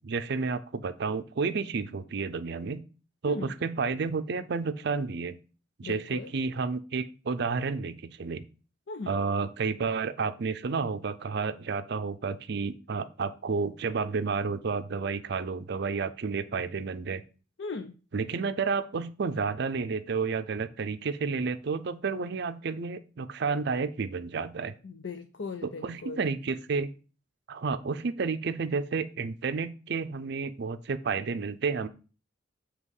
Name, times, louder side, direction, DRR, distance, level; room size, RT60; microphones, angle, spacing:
voice 1, 0.0-2.8 3.2-5.4 5.8-8.4 9.1-17.2 18.1-24.7 25.6-26.9 27.5-31.9, right 4 dB, 65° right, 12 dB, 0.5 m, -31 dB
voice 2, 5.8-6.3 8.9-9.2 17.6-18.0 24.8-26.3, left 4 dB, 70° left, 8 dB, 0.5 m, -38 dB
8.1 x 2.9 x 5.4 m, 0.36 s
head